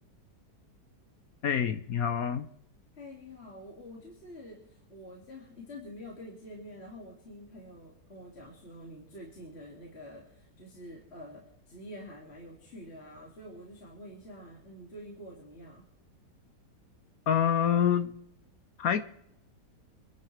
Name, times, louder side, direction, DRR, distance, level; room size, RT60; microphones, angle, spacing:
voice 1, 1.4-2.5 17.3-18.1 18.8-19.0, left 8 dB, 65° left, 1.1 m, -26 dB
voice 2, 3.0-15.9, left 1 dB, 40° left, 2.6 m, -47 dB
25.5 x 11.0 x 3.2 m
omnidirectional pair, 1.8 m